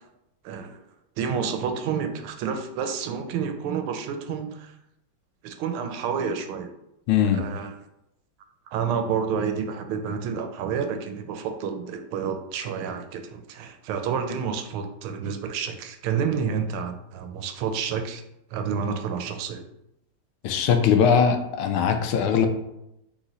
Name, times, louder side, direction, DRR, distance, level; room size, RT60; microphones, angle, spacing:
voice 1, 0.4-0.8 1.2-4.7 5.4-6.7 7.3-7.8 8.7-18.2 18.5-19.7, right 6 dB, 85° right, 6 dB, 1.4 m, -29 dB
voice 2, 7.1-7.4 20.4-22.5, left 7 dB, 85° left, 7 dB, 1.4 m, -20 dB
3.8 x 3.1 x 3.9 m, 0.84 s
omnidirectional pair, 2.3 m